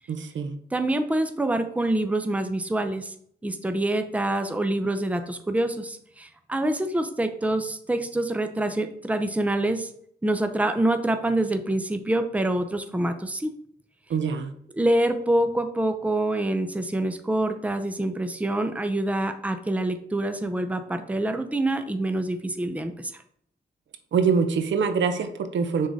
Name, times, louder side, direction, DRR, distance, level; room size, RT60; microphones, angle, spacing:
voice 1, 0.1-0.6 14.1-14.5 24.1-25.9, right 5 dB, 75° right, 8 dB, 0.7 m, -24 dB
voice 2, 0.7-3.1 3.4-9.9 10.2-13.5 14.7-23.1, right 1 dB, 5° right, 8 dB, 0.6 m, -26 dB
6.2 x 3.8 x 4.0 m, 0.65 s
cardioid pair, 85°, 19 cm